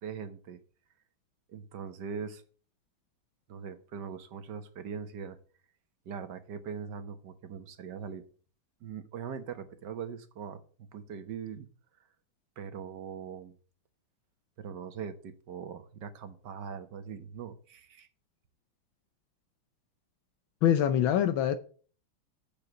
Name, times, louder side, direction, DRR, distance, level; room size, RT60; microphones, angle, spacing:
voice 1, 0.0-0.6 1.5-2.4 3.5-5.4 6.0-8.2 8.8-11.7 12.6-13.5 14.6-18.1, right 7 dB, 60° right, 1.7 m, -41 dB
voice 2, 20.6-21.5, left 10 dB, 75° left, 1.5 m, -24 dB
7.6 x 7.0 x 8.2 m
omnidirectional pair, 2.2 m